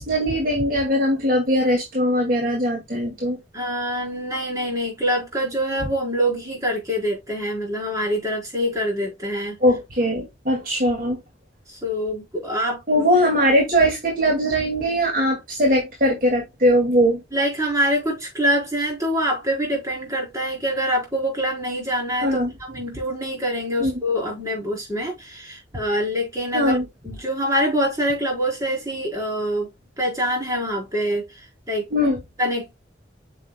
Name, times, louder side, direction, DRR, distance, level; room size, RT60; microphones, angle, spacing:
voice 1, 0.0-3.4 9.6-11.2 12.9-17.2 22.2-22.5 23.8-24.0 26.5-26.8 31.9-32.2, equal, 50° right, 2.5 m, -20 dB
voice 2, 3.5-9.6 11.7-12.8 17.3-26.8 27.0-29.7 30.0-31.9 32.4-32.7, equal, 20° right, 4.8 m, -25 dB
8.4 x 6.7 x 2.3 m
head